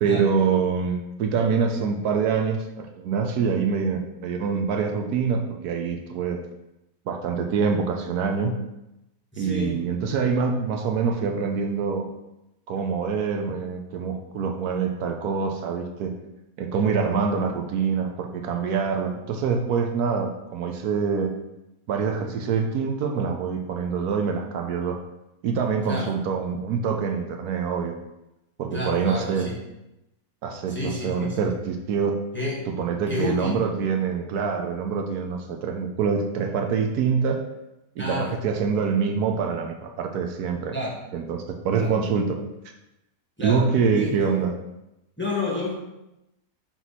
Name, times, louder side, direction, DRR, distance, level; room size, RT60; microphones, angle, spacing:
voice 1, 0.0-6.4 7.1-8.5 9.4-12.1 12.7-16.1 16.6-21.3 21.9-25.0 25.4-27.9 28.6-29.5 30.4-32.2 32.7-37.4 38.0-40.8 41.1-42.4 43.4-44.5, right 5 dB, 75° right, 4 dB, 1.2 m, -25 dB
voice 2, 9.3-9.8 25.9-26.1 28.7-29.6 30.7-31.5 32.3-32.6 33.1-33.6 38.0-38.3 40.7-41.0 41.7-42.0 43.4-43.7 43.9-44.2 45.2-45.7, left 1 dB, 10° left, -4 dB, 1.0 m, -29 dB
6.1 x 4.1 x 4.1 m, 0.91 s
omnidirectional pair, 1.7 m